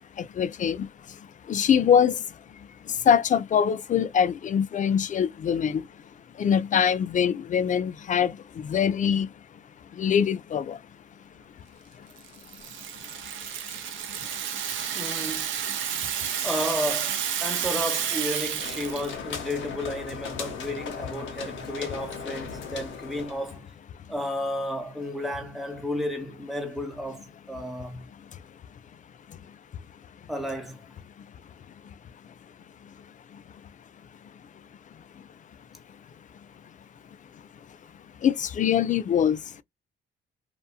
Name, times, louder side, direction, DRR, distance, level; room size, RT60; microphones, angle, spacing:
voice 1, 0.4-0.9 1.5-2.2 3.1-5.8 6.4-8.3 8.6-9.3 10.0-10.8 38.2-39.4, left 8 dB, 40° left, 0.4 m, -23 dB
Rattle (instrument), 12.2-19.1, right 9 dB, 75° right, 0.7 m, -31 dB
voice 2, 14.9-15.5 16.4-23.6 24.1-28.1 30.3-30.8, equal, ahead, 1.0 m, -32 dB
sound 1, 18.2-23.6, left 6 dB, 75° left, 1.0 m, -38 dB
2.8 x 2.5 x 2.3 m
cardioid pair, 90°, 20 cm